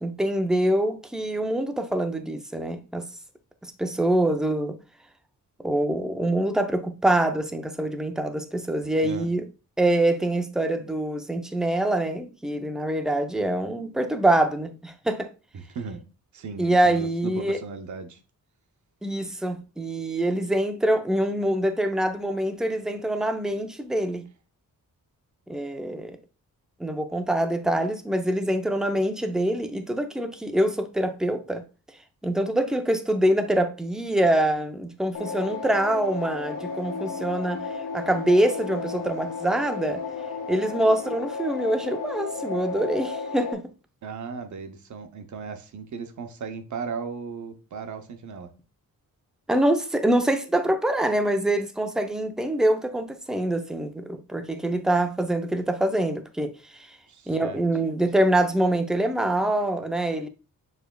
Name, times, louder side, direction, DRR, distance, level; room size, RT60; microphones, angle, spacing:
voice 1, 0.0-3.0 3.8-4.8 5.6-9.4 9.8-15.3 16.6-17.6 19.0-24.2 25.5-26.2 26.8-31.6 32.2-37.6 37.9-40.0 40.5-43.6 49.5-56.6 57.3-60.3, right 1 dB, ahead, 0.4 m, -25 dB
voice 2, 15.5-16.0 16.3-18.2 44.0-48.5 57.1-57.6, right 5 dB, 55° right, 0.7 m, -36 dB
sound 1, 35.1-43.5, left 4 dB, 65° left, 0.7 m, -33 dB
6.8 x 3.3 x 2.2 m
wide cardioid pair, 155°, 34 cm